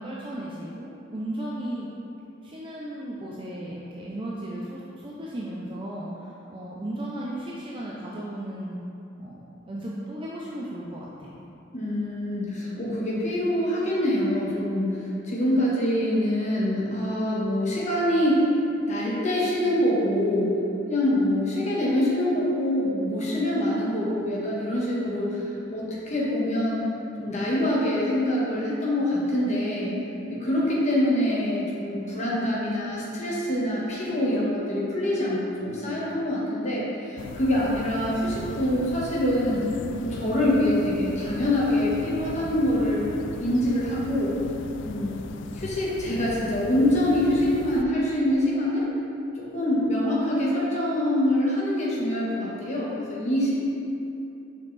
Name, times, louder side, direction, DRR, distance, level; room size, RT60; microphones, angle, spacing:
voice 1, 0.0-1.9 2.4-8.8 9.2-9.4 9.7-11.4, right 1 dB, 25° right, -5 dB, 0.5 m, -35 dB
voice 2, 11.7-18.5 18.9-20.6 20.9-26.8 27.2-30.0 30.3-39.7 40.0-43.0 43.4-44.3 44.8-45.2 45.5-48.9 49.4-53.5, left 1 dB, 35° left, -6 dB, 1.3 m, -25 dB
sound 1, 37.2-47.8, left 4 dB, 60° left, 0.3 m, -39 dB
6.7 x 5.2 x 3.3 m, 2.8 s
head